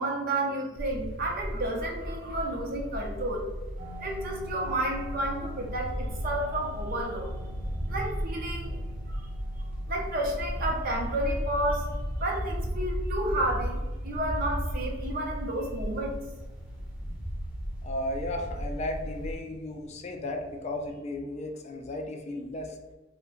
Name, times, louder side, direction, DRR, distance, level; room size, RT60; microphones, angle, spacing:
voice 1, 0.0-3.4 4.0-7.3 7.9-8.8 9.1-9.3 9.9-11.9 12.2-16.2, right 1 dB, 50° right, 0 dB, 0.6 m, -31 dB
sound 1, 0.8-19.3, equal, 5° right, 0.6 m, -35 dB
sound 2, 3.8-21.0, right 1 dB, 80° right, 0.9 m, -50 dB
voice 2, 17.8-22.8, left 1 dB, 35° left, 3 dB, 0.3 m, -35 dB
2.5 x 2.2 x 3.7 m, 1.2 s
head